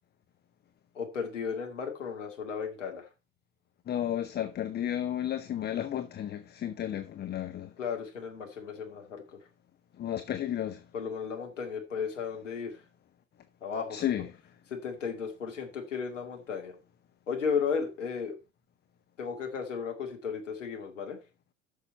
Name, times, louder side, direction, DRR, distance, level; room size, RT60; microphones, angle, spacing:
voice 1, 0.9-3.1 7.8-9.4 10.9-12.8 13.6-14.1 14.7-16.8 17.3-18.4 19.2-21.2, left 6 dB, 75° left, 2.4 m, -34 dB
voice 2, 3.9-7.7 10.0-10.8 13.9-14.3, left 11 dB, 25° left, 0.9 m, -32 dB
8.3 x 6.7 x 5.5 m
figure-of-eight pair, 70°, 37 cm